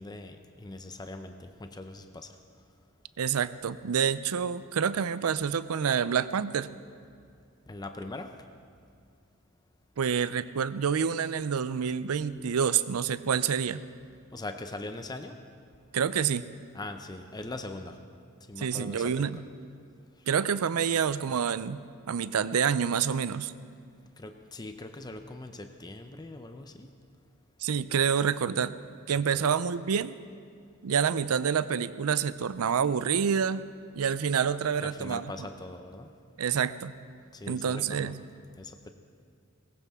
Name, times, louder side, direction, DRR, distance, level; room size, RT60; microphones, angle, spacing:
voice 1, 0.0-2.3 7.7-8.3 14.3-15.4 16.7-18.0 18.5-19.4 24.2-26.9 29.1-29.4 34.8-36.1 37.3-38.1 38.6-38.9, left 2 dB, 20° left, 7 dB, 0.6 m, -41 dB
voice 2, 3.2-6.7 10.0-13.8 15.9-16.4 18.6-19.3 20.3-21.8 22.1-23.5 27.6-28.8 29.1-30.2 30.8-33.6 33.9-35.2 36.4-36.9 37.5-38.1, right 7 dB, 90° right, 15 dB, 0.5 m, -27 dB
19.5 x 16.5 x 3.6 m, 2.2 s
head